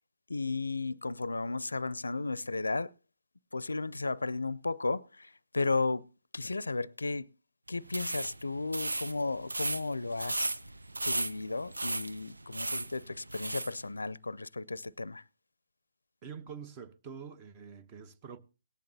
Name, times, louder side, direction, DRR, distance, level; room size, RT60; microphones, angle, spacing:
voice 1, 0.3-2.9 3.5-6.1 6.3-7.3 7.7-10.6 11.0-15.2, left 3 dB, 85° left, 0.5 m, -34 dB
sound 1, 7.8-13.8, right 2 dB, 90° right, 0.7 m, -36 dB
voice 2, 16.2-18.4, right 6 dB, 30° right, 1.0 m, -46 dB
18.0 x 10.5 x 2.8 m
figure-of-eight pair, 135°, 0 cm